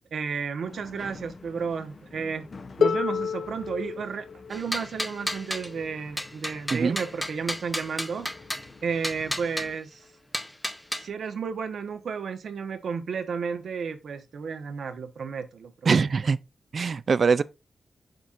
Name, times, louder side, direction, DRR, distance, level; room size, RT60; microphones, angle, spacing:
voice 1, 0.1-2.5 2.8-8.3 8.8-10.0 11.0-16.1 17.4-17.5, right 6 dB, 80° right, 1.1 m, -32 dB
sound 1, 0.6-9.8, left 3 dB, 40° left, 0.9 m, -48 dB
Harp, 2.8-8.6 9.6-9.7, left 6 dB, 75° left, 0.5 m, -32 dB
sound 2, 4.5-5.7 6.2-8.7 9.0-9.7 10.3-11.1, left 1 dB, 5° left, 0.8 m, -32 dB
voice 2, 15.9-16.4 16.7-17.4, right 5 dB, 50° right, 0.4 m, -22 dB
8.0 x 6.0 x 2.6 m
wide cardioid pair, 155°, 0 cm